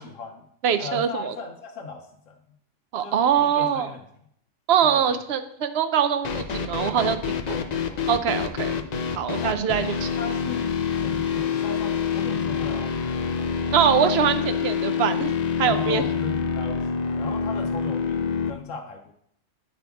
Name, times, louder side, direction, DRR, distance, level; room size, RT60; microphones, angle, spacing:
voice 1, 0.0-0.5 0.8-2.4 3.0-4.0 4.9-5.2 7.3-8.1 9.4-9.6 10.2-13.6 14.2-14.3 15.6-19.1, left 4 dB, 80° left, 2 dB, 1.2 m, -37 dB
voice 2, 0.6-1.3 2.9-3.9 4.7-7.2 8.1-8.8 9.2-10.1 13.7-15.3 15.6-16.0, right 8 dB, 65° right, 11 dB, 0.8 m, -23 dB
sound 1, 6.2-18.5, left 6 dB, 55° left, 0.4 m, -26 dB
9.0 x 5.1 x 3.5 m, 0.70 s
omnidirectional pair, 1.3 m